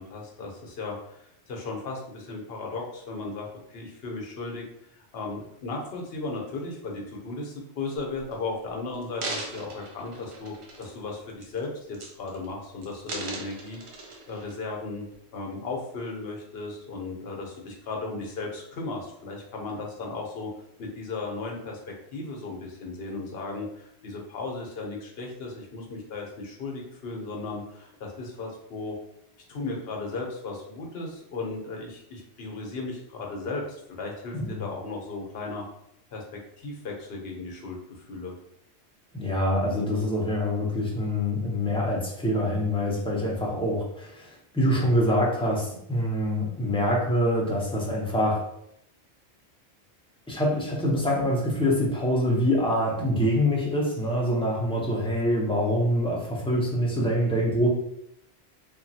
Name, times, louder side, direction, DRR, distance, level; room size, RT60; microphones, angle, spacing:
voice 1, 0.0-4.6 4.9-13.8 14.3-15.1 15.3-20.5 20.8-21.8 22.1-29.0 29.5-35.6 36.1-36.2 36.6-38.3, left 3 dB, 65° left, 0 dB, 0.9 m, -36 dB
sound 1, 8.3-8.4 8.9-11.0 11.4-11.6 11.9-12.5 12.8-14.5 15.1-15.2, right 2 dB, 80° right, 0.9 m, -38 dB
voice 2, 39.1-48.5 50.3-57.7, equal, 10° left, -3 dB, 0.4 m, -25 dB
3.0 x 2.3 x 2.7 m, 0.74 s
omnidirectional pair, 1.1 m